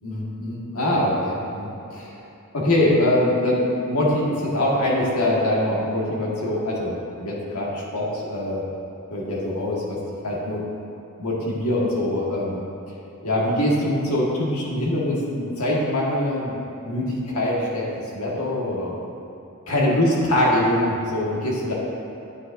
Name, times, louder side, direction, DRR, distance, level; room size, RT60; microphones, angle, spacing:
voice 1, 0.0-2.1 2.5-8.6 9.1-10.6 11.2-12.6 13.2-16.5 16.8-17.8 18.1-18.9 19.7-21.7, left 1 dB, 85° left, -4 dB, 1.6 m, -23 dB
9.8 x 7.3 x 2.6 m, 2.8 s
head